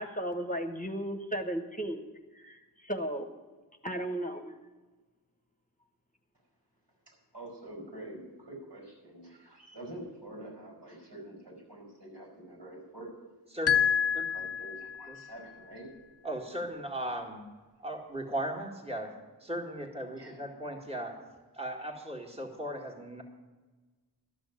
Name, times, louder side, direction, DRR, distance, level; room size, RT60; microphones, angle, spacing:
voice 1, 0.0-2.1 2.3-3.3 3.8-4.5, right 1 dB, 20° left, 5 dB, 1.2 m, -35 dB
voice 2, 7.1-13.1 14.3-15.9 20.2-20.5, right 1 dB, 80° right, -1 dB, 5.4 m, -47 dB
voice 3, 13.5-14.5 15.1-15.2 16.2-17.4 17.8-19.1 19.4-21.2 21.5-23.2, right 1 dB, 15° right, 0 dB, 2.2 m, -37 dB
sound 1, 13.7-15.2, left 8 dB, 40° left, 0.5 m, -28 dB
12.5 x 6.3 x 9.7 m, 1.3 s
wide cardioid pair, 45°, 41 cm